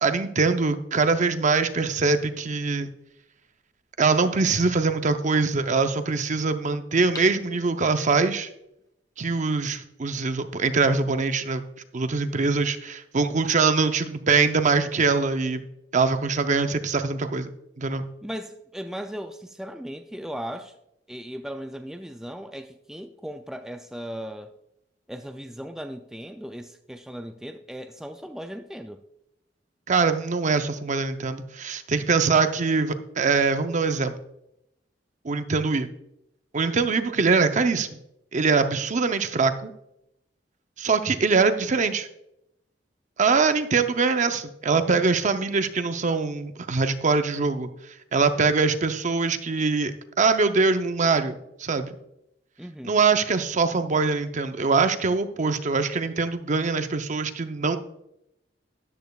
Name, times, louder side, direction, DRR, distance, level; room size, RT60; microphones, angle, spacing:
voice 1, 0.0-2.9 4.0-8.5 9.2-11.6 11.9-15.6 15.9-17.5 17.8-18.1 29.9-34.1 35.2-35.9 36.5-38.0 38.3-39.7 40.8-42.1 43.2-47.7 48.1-52.0 52.8-57.8, right 4 dB, 45° right, 0.6 m, -23 dB
sound 1, 3.4-3.5 7.0-8.3 8.8-8.9, left 3 dB, 25° left, 1.8 m, -43 dB
voice 2, 18.2-20.7 21.1-24.5 25.1-29.0 52.6-53.0, equal, 5° right, 0.3 m, -37 dB
13.5 x 10.5 x 2.3 m
head